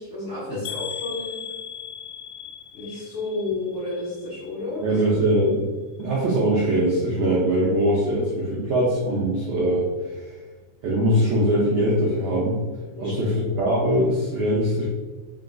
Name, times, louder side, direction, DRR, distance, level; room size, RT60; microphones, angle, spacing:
voice 1, 0.0-1.4 2.7-5.0 12.9-13.4, left 2 dB, 60° left, -10 dB, 1.3 m, -31 dB
sound 1, 0.7-4.6 4.9-5.5 6.0-6.1 6.5-6.6, left 8 dB, 80° left, 2.0 m, -38 dB
voice 2, 4.8-5.7 6.0-10.3 10.8-12.6 13.0-14.9, right 1 dB, 80° right, -6 dB, 1.4 m, -22 dB
4.7 x 3.7 x 2.3 m, 1.3 s
omnidirectional pair, 3.6 m